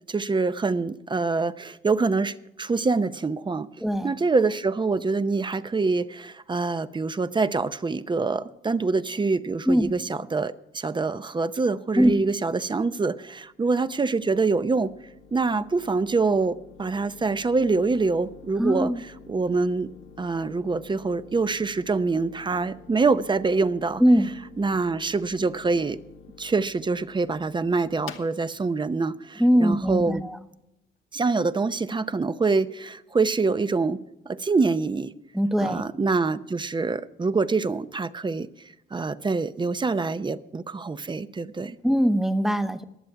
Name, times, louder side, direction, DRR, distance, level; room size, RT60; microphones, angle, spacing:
voice 1, 0.1-3.7 4.0-14.9 15.3-18.9 19.3-19.9 20.2-24.0 24.6-26.0 26.4-30.2 31.1-34.0 34.3-35.1 35.6-38.5 38.9-41.8, right 4 dB, 25° right, 0.7 m, -25 dB
voice 2, 3.8-4.1 9.7-9.9 12.0-12.2 18.6-19.0 24.0-24.3 29.4-30.4 35.3-35.8 41.8-42.8, equal, ahead, 1.0 m, -21 dB
sound 1, 13.1-30.6, left 7 dB, 80° left, 1.4 m, -49 dB
22.5 x 7.7 x 4.6 m
cardioid pair, 90°, 20 cm